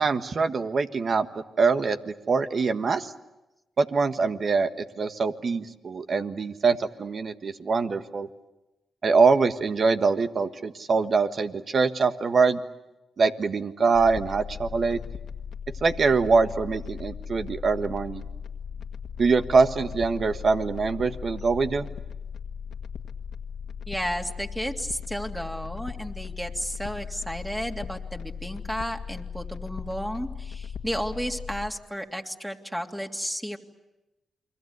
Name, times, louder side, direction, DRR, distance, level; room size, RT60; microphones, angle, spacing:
voice 1, 0.0-3.1 3.8-4.7 5.0-8.3 9.0-12.6 13.2-15.0 15.8-18.2 19.2-21.9, right 4 dB, 55° right, 9 dB, 1.5 m, -24 dB
sound 1, 13.9-31.7, left 7 dB, 80° left, 1.7 m, -38 dB
voice 2, 23.9-33.6, equal, 5° right, 3 dB, 2.9 m, -33 dB
29.0 x 22.5 x 8.2 m, 1.0 s
supercardioid pair, 50°, 0 cm